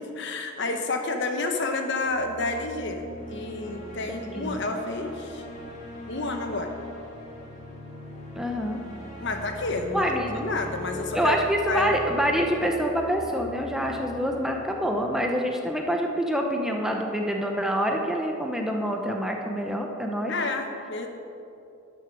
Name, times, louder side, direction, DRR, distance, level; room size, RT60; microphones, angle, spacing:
voice 1, 0.0-5.4 6.1-6.7 9.2-10.1 10.3-11.4 11.7-12.0 20.3-21.1, left 2 dB, 60° left, 5 dB, 1.0 m, -30 dB
sound 1, 2.0-16.2, left 1 dB, 35° left, 2.0 m, -41 dB
voice 2, 4.1-4.6 8.4-8.8 9.9-10.4 11.1-20.3, equal, 5° right, 1 dB, 0.7 m, -26 dB
12.0 x 6.6 x 6.1 m, 2.7 s
head